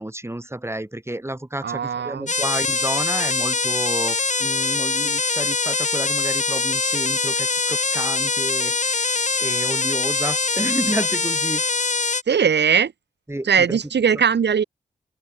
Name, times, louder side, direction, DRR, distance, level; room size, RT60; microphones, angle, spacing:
voice 1, 0.0-11.6 13.3-13.8, right 1 dB, 15° right, 5.2 m, -30 dB
voice 2, 1.6-2.3 12.3-12.9 13.4-14.6, right 7 dB, 80° right, 4.9 m, -19 dB
sound 1, 2.3-12.2, left 3 dB, 45° left, 6.1 m, -23 dB
open air
cardioid pair, 60°, 17 cm